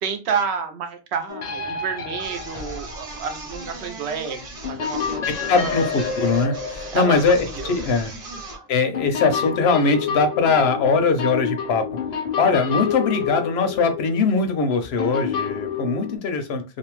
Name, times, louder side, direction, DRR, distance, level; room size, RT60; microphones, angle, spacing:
voice 1, 0.0-5.7 6.9-8.4, right 6 dB, 80° right, 6 dB, 0.9 m, -30 dB
sound 1, 1.3-3.4 4.6-7.8 8.9-16.2, left 6 dB, 50° left, 0.6 m, -29 dB
sound 2, 2.2-8.7, right 1 dB, 35° right, 0.8 m, -37 dB
voice 2, 5.5-8.1 8.7-11.9 12.4-16.6, left 4 dB, 75° left, 8 dB, 0.8 m, -21 dB
2.7 x 2.1 x 2.9 m, 0.28 s
omnidirectional pair, 1.1 m